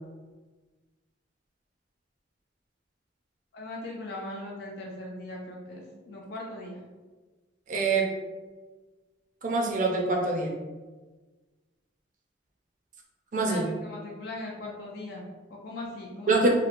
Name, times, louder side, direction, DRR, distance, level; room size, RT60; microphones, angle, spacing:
voice 1, 3.5-6.9 13.4-16.4, left 2 dB, 55° left, -1 dB, 0.3 m, -39 dB
voice 2, 7.7-8.2 9.4-10.5 13.3-13.6 16.3-16.5, right 3 dB, 40° right, 1 dB, 0.4 m, -25 dB
2.8 x 2.1 x 2.5 m, 1.3 s
head